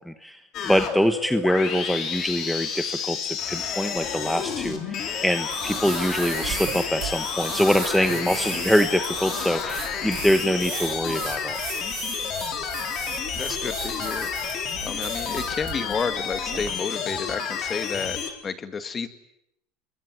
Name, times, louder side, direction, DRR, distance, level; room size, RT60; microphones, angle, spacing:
voice 1, 0.1-0.4 0.7-11.6, equal, ahead, 9 dB, 1.1 m, -24 dB
sound 1, 0.5-18.3, left 7 dB, 40° left, 4.6 m, -30 dB
sound 2, 5.5-16.7, right 12 dB, 55° right, 5.9 m, -37 dB
voice 2, 13.3-14.5 14.8-19.1, left 5 dB, 25° left, 11 dB, 2.2 m, -31 dB
28.0 x 22.5 x 9.6 m, 0.78 s
supercardioid pair, 140°, 0 cm